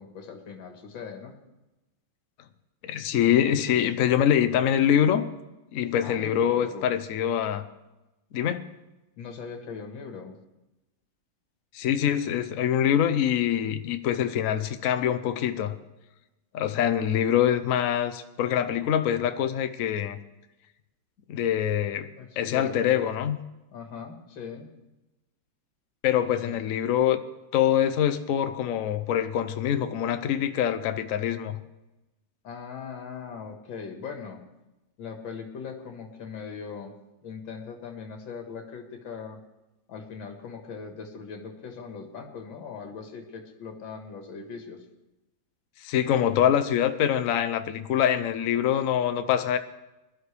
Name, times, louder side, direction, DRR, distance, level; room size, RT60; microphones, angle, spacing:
voice 1, 0.0-1.4 6.0-7.0 9.2-10.4 22.2-23.1 23.7-24.7 26.3-26.7 32.4-34.4 35.0-36.9 37.2-39.4 39.9-44.8, left 5 dB, 80° left, 2.3 m, -40 dB
voice 2, 2.8-5.3 5.7-7.6 8.3-8.7 11.7-15.7 16.5-20.2 21.3-22.1 22.4-23.4 26.0-27.2 27.5-31.6 45.8-49.6, left 10 dB, 55° left, 1.0 m, -24 dB
21.0 x 12.0 x 3.4 m
omnidirectional pair, 2.1 m